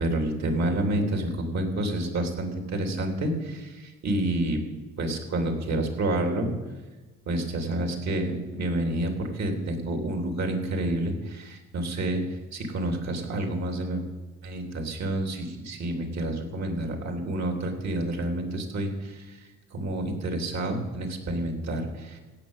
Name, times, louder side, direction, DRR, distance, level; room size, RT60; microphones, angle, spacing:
voice 1, 0.0-4.6 5.0-6.5 7.2-12.2 12.5-14.0 14.4-19.4 19.7-22.2, right 1 dB, 60° right, 3 dB, 3.3 m, -29 dB
16.0 x 6.3 x 9.1 m, 1.3 s
cardioid pair, 90°, 30 cm